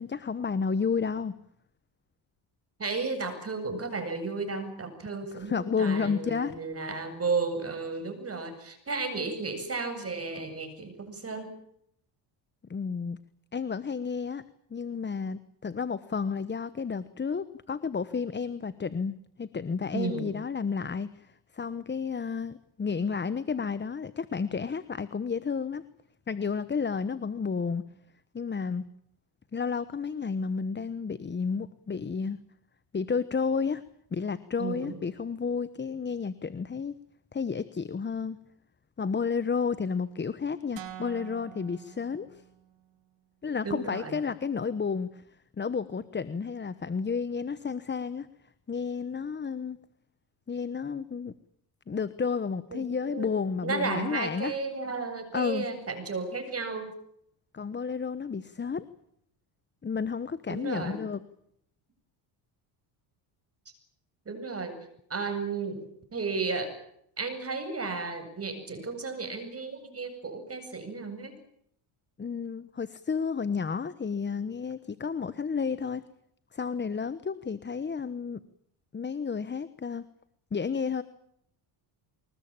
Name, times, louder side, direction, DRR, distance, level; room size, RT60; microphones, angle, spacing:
voice 1, 0.0-1.3 5.3-6.5 12.7-13.2 13.5-14.4 14.7-25.8 26.3-27.8 28.3-28.8 29.5-32.4 32.9-33.8 34.1-36.9 37.3-38.4 39.0-42.4 43.4-45.2 45.6-48.3 48.7-49.8 50.5-51.3 51.9-54.5 55.3-55.6 57.5-58.9 59.8-61.2 72.2-76.0 76.5-78.4 78.9-80.0 80.5-81.0, left 5 dB, 20° left, 15 dB, 1.1 m, -31 dB
voice 2, 2.8-11.6 19.9-20.3 34.6-35.0 43.6-44.2 52.7-53.3 53.6-56.9 60.5-61.0 64.3-64.8 65.1-65.8 66.1-66.8 67.2-71.4, right 4 dB, 30° right, 8 dB, 7.9 m, -33 dB
sound 1, 40.8-42.9, right 12 dB, 60° right, 4.1 m, -46 dB
25.0 x 21.0 x 8.9 m, 0.72 s
cardioid pair, 95°, 50 cm